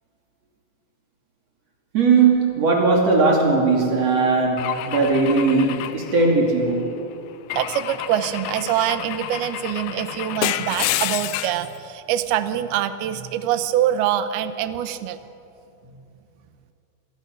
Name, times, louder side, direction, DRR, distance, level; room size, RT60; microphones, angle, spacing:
voice 1, 1.9-7.0, right 4 dB, 40° right, 0 dB, 3.2 m, -18 dB
Car / Engine / Glass, 4.6-6.8 7.5-11.7, left 13 dB, 80° left, 2.9 m, -29 dB
voice 2, 7.5-15.2, right 11 dB, 75° right, 11 dB, 2.5 m, -24 dB
26.5 x 20.5 x 6.5 m, 2.7 s
omnidirectional pair, 5.3 m